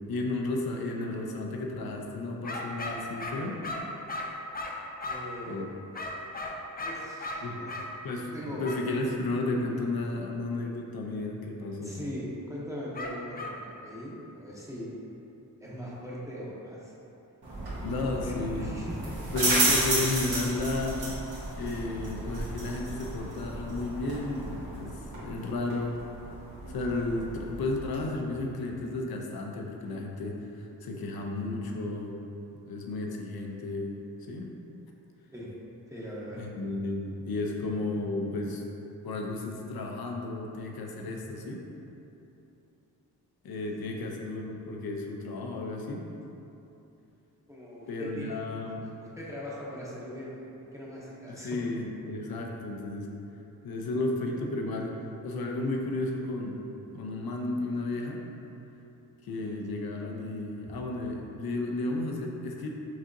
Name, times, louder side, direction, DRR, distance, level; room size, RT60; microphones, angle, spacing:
voice 1, 0.1-3.6 5.5-5.7 7.4-7.6 8.0-8.3 8.6-12.0 17.8-18.7 19.3-21.0 21.6-26.0 26.7-32.2 32.7-33.9 34.3-34.5 36.4-38.6 39.0-41.7 43.4-46.0 47.9-48.8 51.3-53.1 53.6-56.6 56.9-58.2 59.2-62.7, left 2 dB, 70° left, 1 dB, 0.6 m, -33 dB
sound 1, 2.4-5.4 5.9-7.9 8.6-8.9 12.9-13.6, left 2 dB, 25° left, 0.4 m, -36 dB
voice 2, 5.0-5.6 6.8-7.7 8.3-8.7 11.8-15.0 15.6-16.9 17.9-19.1 35.3-35.5 35.9-36.5 43.6-43.9 47.5-48.4 49.0-50.5 50.7-51.6, equal, 10° right, -7 dB, 0.7 m, -40 dB
sound 2, 17.4-28.0, right 1 dB, 90° right, 1.3 m, -32 dB
6.0 x 2.8 x 2.6 m, 2.9 s
wide cardioid pair, 90°, 38 cm